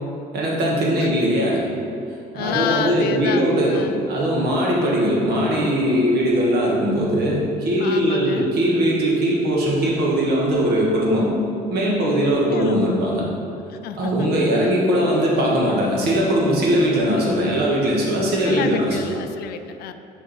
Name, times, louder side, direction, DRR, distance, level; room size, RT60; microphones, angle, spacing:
voice 1, 0.3-1.6 2.3-11.3 11.7-13.2 14.0-18.8, equal, 70° right, -4 dB, 1.6 m, -20 dB
voice 2, 2.3-4.1 7.8-8.5 12.5-12.8 13.7-14.3 18.4-19.9, left 9 dB, 70° left, 9 dB, 0.4 m, -29 dB
6.4 x 5.0 x 4.2 m, 2.6 s
cardioid pair, 110°, 17 cm